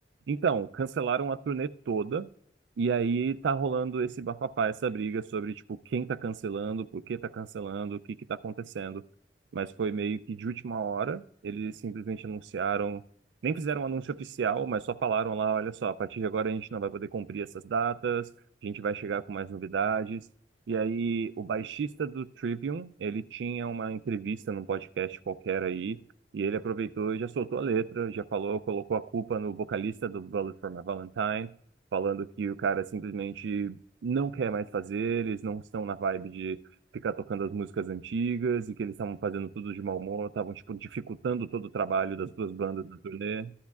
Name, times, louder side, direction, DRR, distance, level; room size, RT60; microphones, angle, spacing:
voice 1, 0.3-2.3 2.8-9.0 9.5-13.0 13.4-18.3 18.6-20.3 20.7-26.0 26.3-31.5 31.9-36.6 36.9-43.5, right 6 dB, 90° right, 0.4 m, -31 dB
14.0 x 10.5 x 2.3 m
head